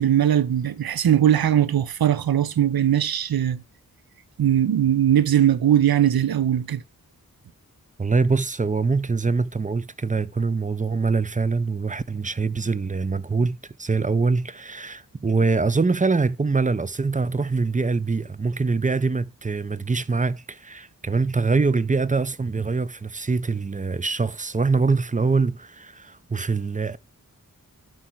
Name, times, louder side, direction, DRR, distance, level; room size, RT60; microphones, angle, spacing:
voice 1, 0.0-3.6 4.4-6.8, right 10 dB, 90° right, 0.6 m, -20 dB
voice 2, 8.0-27.0, right 4 dB, 20° right, 0.5 m, -24 dB
11.5 x 4.7 x 4.5 m
wide cardioid pair, 60°, 35 cm